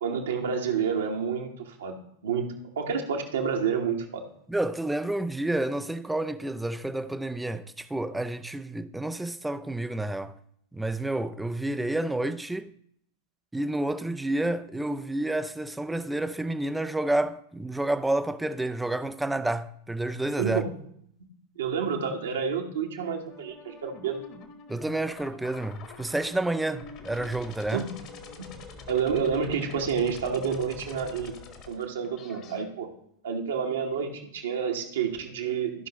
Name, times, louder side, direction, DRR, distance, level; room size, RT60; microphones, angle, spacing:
voice 1, 0.0-2.0 2.2-2.5 2.7-4.2 20.4-20.6 21.6-24.2 27.7-27.9 28.9-31.4 31.7-32.9 33.2-35.9, right 6 dB, 65° right, 1.4 m, -29 dB
voice 2, 4.5-10.4 10.7-12.7 13.5-20.7 24.7-27.9, right 1 dB, 5° right, 0.4 m, -29 dB
sound 1, 23.3-32.6, left 4 dB, 35° left, 1.3 m, -46 dB
14.5 x 5.5 x 3.0 m
figure-of-eight pair, 90°, 0 cm